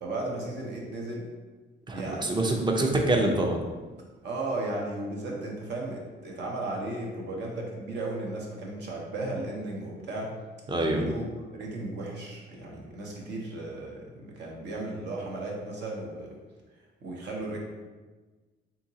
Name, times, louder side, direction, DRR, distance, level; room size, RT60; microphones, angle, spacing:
voice 1, 0.0-1.3 1.9-2.4 4.2-10.3 10.8-16.4 17.0-17.6, right 2 dB, 60° right, -2 dB, 0.8 m, -35 dB
voice 2, 1.9-3.6 10.7-11.0, right 2 dB, 25° right, 1 dB, 0.5 m, -25 dB
3.6 x 2.8 x 2.8 m, 1.3 s
cardioid pair, 90°, 20 cm